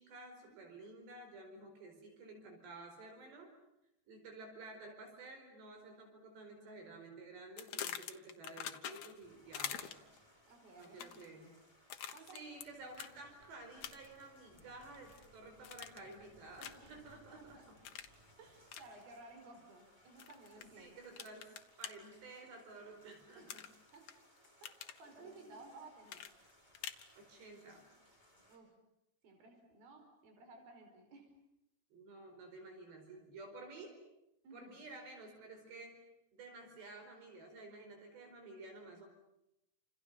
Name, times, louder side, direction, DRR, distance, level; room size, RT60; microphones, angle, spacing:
voice 1, 0.0-3.5 4.1-10.1 10.7-11.5 12.3-17.8 20.6-23.6 25.2-25.6 27.2-27.9 31.9-34.0 34.5-36.1 36.3-39.1, right 2 dB, 75° right, 4 dB, 6.9 m, -53 dB
sound 1, 7.6-9.2 9.5-10.2 10.8-11.3 11.9-12.7 12.9-13.1 13.8-14.2 14.6-15.2 15.6-16.1 16.6-16.9 17.8-18.1 18.7-18.9 20.2-20.6 21.2-21.9 23.5-24.1 24.4-25.0 26.1-27.1, left 10 dB, 70° left, 1.7 m, -45 dB
sound 2, 9.2-28.6, equal, 5° right, 5.7 m, -66 dB
voice 2, 10.5-11.5 12.1-12.4 16.8-17.1 17.4-17.6 18.4-21.0 23.4-23.5 23.9-24.0 24.6-26.3 28.5-28.7 29.2-31.3 34.4-34.8, right 2 dB, 55° right, 4 dB, 6.5 m, -57 dB
29.5 x 27.5 x 7.0 m, 0.85 s
omnidirectional pair, 5.0 m